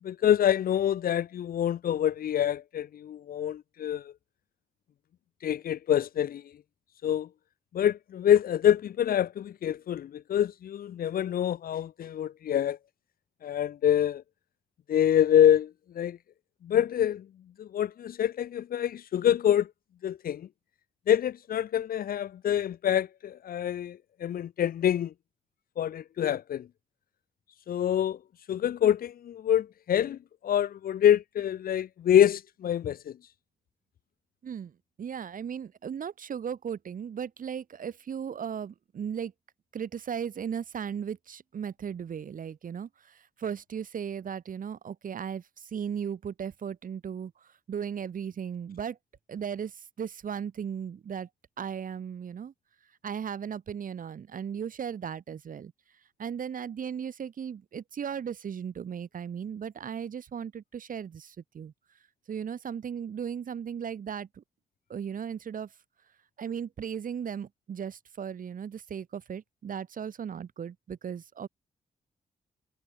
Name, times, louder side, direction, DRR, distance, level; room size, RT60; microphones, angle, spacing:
voice 1, 0.0-4.1 5.4-6.4 7.0-7.3 7.7-12.8 13.4-14.2 14.9-15.7 15.9-16.2 16.6-17.2 17.6-19.7 20.0-20.5 21.1-25.1 25.8-26.7 27.7-28.2 28.5-30.2 30.4-33.0, left 10 dB, 85° left, 1.7 m, -26 dB
voice 2, 34.4-39.3 39.7-49.0 49.3-51.3 51.6-52.5 53.0-55.7 56.2-61.7 62.3-64.4 64.9-65.7 66.4-71.5, right 8 dB, 65° right, 3.8 m, -36 dB
cardioid pair, 80°, 15 cm